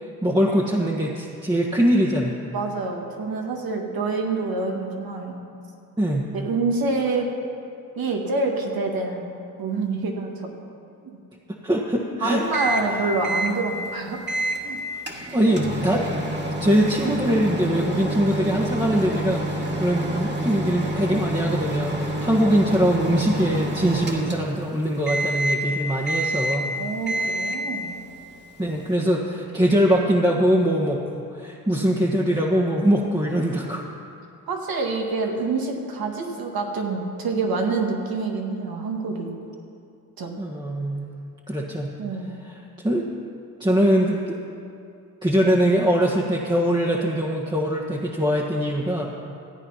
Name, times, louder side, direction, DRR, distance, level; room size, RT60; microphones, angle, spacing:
voice 1, 0.2-2.4 6.0-6.3 11.5-12.4 15.3-16.1 16.6-26.7 28.6-31.0 31.3-33.8 40.4-41.1 41.5-41.9 42.8-43.1 43.6-44.4 45.2-49.1, equal, 10° right, -4 dB, 1.5 m, -22 dB
voice 2, 2.5-5.4 6.3-7.3 8.0-10.5 11.0-11.2 12.2-14.2 14.6-14.8 26.8-28.0 34.5-39.4 40.2-40.3 42.0-42.3, right 3 dB, 70° right, 2 dB, 1.9 m, -27 dB
Microwave oven, 12.5-12.9 13.2-13.6 14.3-14.6 15.1-24.7 25.1-25.7 26.1-26.7 27.1-27.7, right 1 dB, 30° right, 2.1 m, -27 dB
14.0 x 8.7 x 5.8 m, 2.6 s
supercardioid pair, 50°, 37 cm